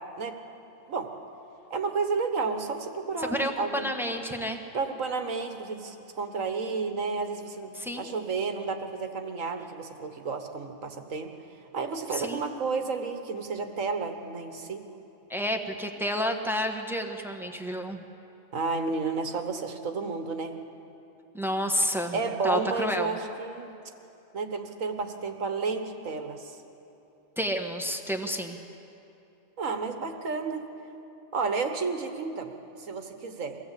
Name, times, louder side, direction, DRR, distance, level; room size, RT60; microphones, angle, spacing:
voice 1, 1.7-4.2 4.7-7.7 8.0-11.3 11.7-14.8 18.5-20.6 22.1-23.8 24.3-26.6 29.6-30.6 31.3-32.5 32.8-33.6, right 4 dB, 70° right, 6 dB, 1.8 m, -31 dB
voice 2, 3.2-4.6 7.7-8.1 12.1-12.5 15.3-18.0 21.3-22.2 22.4-23.2 27.4-28.6, equal, ahead, 4 dB, 1.2 m, -30 dB
23.5 x 17.0 x 8.4 m, 2.8 s
omnidirectional pair, 1.4 m